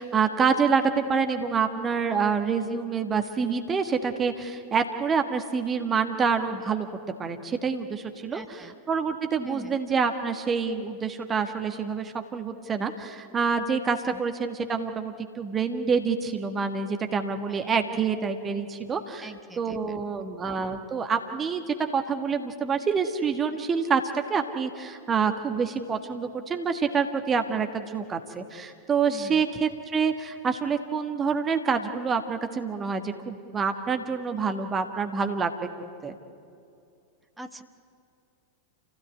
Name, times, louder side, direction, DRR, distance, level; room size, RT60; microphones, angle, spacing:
voice 1, 0.0-6.9 7.2-19.3 19.6-24.0 24.3-35.7 36.0-36.1, right 5 dB, 20° right, 7 dB, 1.6 m, -27 dB
voice 2, 8.3-8.7 9.4-9.8 17.5-17.6 19.2-20.3 29.1-29.4 37.4-37.6, right 1 dB, 5° right, 6 dB, 1.2 m, -43 dB
28.0 x 16.5 x 9.6 m, 2.5 s
figure-of-eight pair, 90°, 0 cm